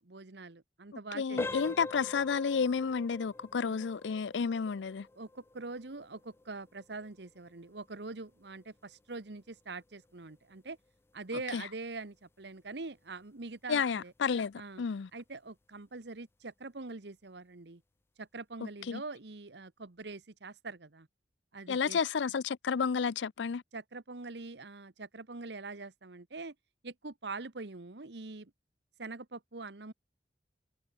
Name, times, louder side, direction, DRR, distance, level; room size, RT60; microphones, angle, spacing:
voice 1, 0.0-1.8 3.7-3.9 5.2-10.8 11.1-14.1 14.6-14.8 15.1-17.8 18.2-21.1 21.5-22.0 23.7-26.5 26.8-28.5 29.0-29.9, right 3 dB, 65° right, 1.2 m, -44 dB
voice 2, 1.1-5.1 11.5-11.6 13.7-15.1 18.9-19.0 21.7-23.6, left 6 dB, 80° left, 0.5 m, -31 dB
sound 1, 1.4-12.0 12.4-12.6 13.2-13.3 13.8-14.0, left 2 dB, 15° left, 0.3 m, -46 dB
head